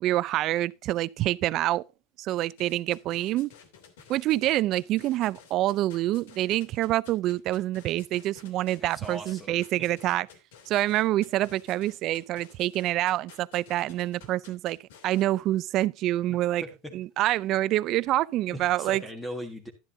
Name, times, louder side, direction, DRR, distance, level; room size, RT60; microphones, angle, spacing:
voice 1, 0.0-1.8 2.2-3.5 4.1-10.3 10.7-14.8 15.0-16.6 16.9-19.0, right 15 dB, 45° right, 0.4 m, -26 dB
sound 1, 2.5-15.3, left 7 dB, 85° left, 2.8 m, -53 dB
voice 2, 8.8-9.9 16.6-16.9 18.5-19.7, equal, 10° left, 1.6 m, -39 dB
12.0 x 11.0 x 2.7 m
supercardioid pair, 140°, 0 cm